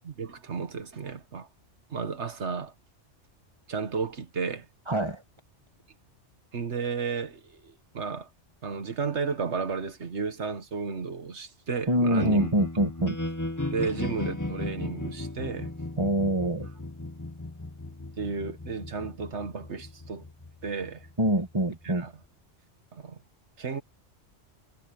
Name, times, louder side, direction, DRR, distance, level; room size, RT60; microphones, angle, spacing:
voice 1, 0.0-1.5 1.9-2.7 3.7-4.7 6.5-8.3 8.6-12.5 13.7-15.7 18.2-20.2 20.6-21.1 21.8-22.1 22.9-23.2 23.6-23.8, right 5 dB, 70° right, 1.6 m, -33 dB
voice 2, 4.9-5.2 11.9-13.1 16.0-16.7 21.2-22.1, right 1 dB, 25° right, 1.9 m, -25 dB
sound 1, 12.2-22.3, left 2 dB, 15° left, 1.5 m, -36 dB
omnidirectional pair, 1.2 m